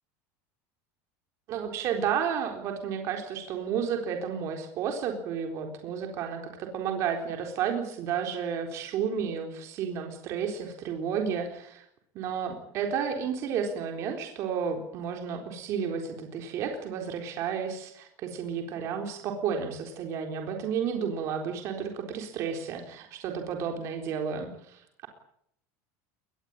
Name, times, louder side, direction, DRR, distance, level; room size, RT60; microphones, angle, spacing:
voice 1, 1.5-11.8 12.1-25.1, right 7 dB, 35° right, 3 dB, 4.0 m, -32 dB
23.0 x 20.5 x 8.8 m, 0.71 s
cardioid pair, 175°, 8 cm